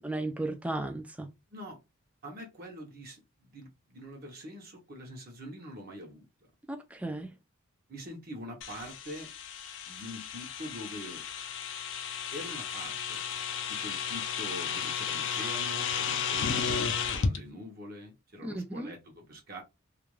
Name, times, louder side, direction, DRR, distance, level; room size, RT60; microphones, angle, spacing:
voice 1, 0.0-1.3 6.7-7.3 18.4-18.9, right 2 dB, 5° right, 0.3 m, -35 dB
voice 2, 2.2-6.3 7.9-9.3 9.9-11.2 12.3-13.2 13.7-19.6, equal, 45° right, 0.7 m, -44 dB
sound 1, 8.6-17.4, left 6 dB, 60° left, 0.4 m, -33 dB
2.4 x 2.2 x 3.0 m
head